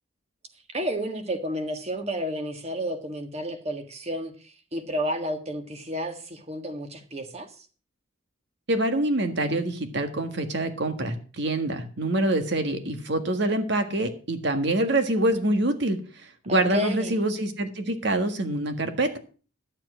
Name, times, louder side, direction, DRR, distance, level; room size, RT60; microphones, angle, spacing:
voice 1, 0.7-7.5 16.5-17.2, equal, 35° right, 6 dB, 1.7 m, -31 dB
voice 2, 8.7-19.2, right 1 dB, 65° right, 8 dB, 1.7 m, -25 dB
11.5 x 7.6 x 6.1 m, 0.37 s
head